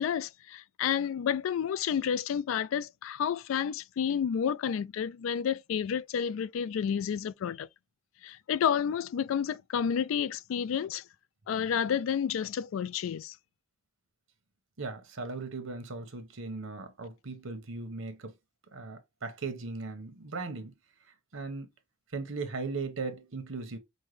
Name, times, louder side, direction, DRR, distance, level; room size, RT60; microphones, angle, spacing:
voice 1, 0.0-7.7 8.2-11.0 11.5-13.4, left 8 dB, 85° left, 0.3 m, -30 dB
voice 2, 14.8-18.3 18.7-20.7 21.3-21.7 22.1-23.8, right 3 dB, 85° right, 1.0 m, -38 dB
5.3 x 2.2 x 3.2 m
head